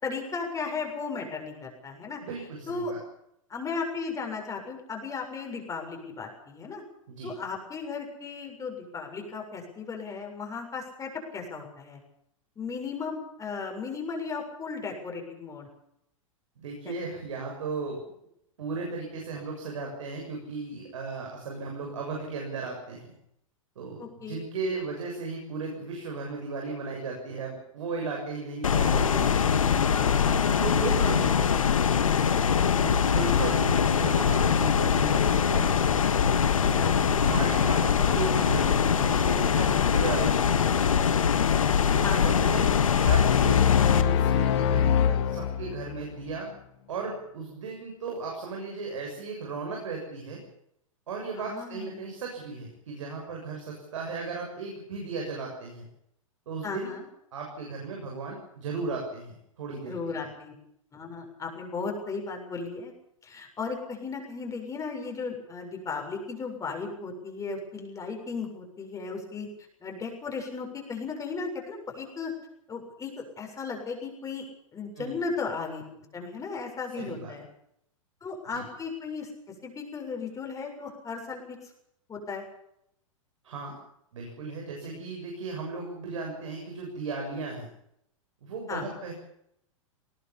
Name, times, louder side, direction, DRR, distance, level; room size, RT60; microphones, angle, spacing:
voice 1, 0.0-2.2 2.7-2.9 3.5-6.8 7.2-12.0 12.6-15.7 16.9-17.0 24.0-24.4 24.6-24.7 29.9-31.5 36.7-36.9 42.0-42.4 51.4-52.1 56.6-57.0 59.9-60.5 60.9-62.9 63.2-69.5 69.8-72.3 72.7-74.4 74.7-77.4 78.2-79.3 79.6-81.6 82.1-82.4 84.8-85.0 88.7-88.8, left 4 dB, 20° left, 2 dB, 7.0 m, -36 dB
voice 2, 2.2-3.0 7.1-7.3 16.6-18.0 18.6-23.1 23.8-29.6 30.6-31.6 32.4-36.1 37.0-41.0 41.9-46.5 46.9-50.4 51.1-55.9 56.5-57.0 57.3-60.3 75.0-75.1 76.9-77.4 78.5-78.7 83.4-83.8 84.1-87.7 88.4-89.1, right 4 dB, 65° right, 0 dB, 7.2 m, -36 dB
sound 1, 28.6-44.0, left 7 dB, 75° left, 1.9 m, -23 dB
sound 2, 43.1-46.0, left 9 dB, 55° left, 2.0 m, -23 dB
20.0 x 20.0 x 7.2 m, 0.76 s
figure-of-eight pair, 100°, 17 cm